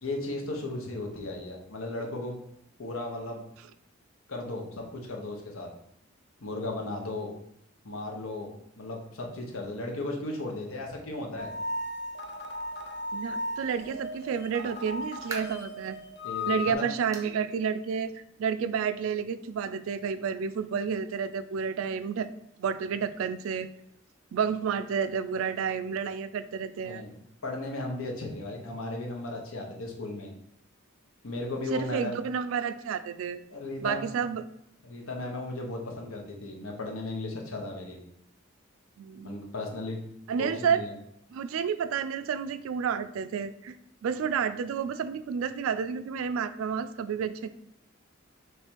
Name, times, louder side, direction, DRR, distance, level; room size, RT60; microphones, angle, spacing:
voice 1, 0.0-2.4 2.8-3.4 4.3-5.7 6.4-7.3 7.8-11.5 16.2-16.9 26.8-30.3 31.2-32.2 33.5-34.2 34.8-38.0 39.2-40.0 40.4-40.9, left 2 dB, 90° left, 1 dB, 0.9 m, -36 dB
sound 1, 11.4-16.7, left 2 dB, 55° left, 0.6 m, -36 dB
voice 2, 13.1-16.0 16.5-22.3 22.6-23.7 24.3-27.0 31.7-33.4 33.8-34.4 39.0-39.4 40.3-40.8 41.3-43.8 44.0-47.5, right 6 dB, 80° right, 12 dB, 0.3 m, -30 dB
sound 2, 15.3-15.7 16.2-16.3 17.1-17.4 17.7-17.8 18.3-18.4 19.5-19.6, right 2 dB, 15° right, 0.5 m, -41 dB
3.4 x 3.2 x 4.4 m, 0.75 s
head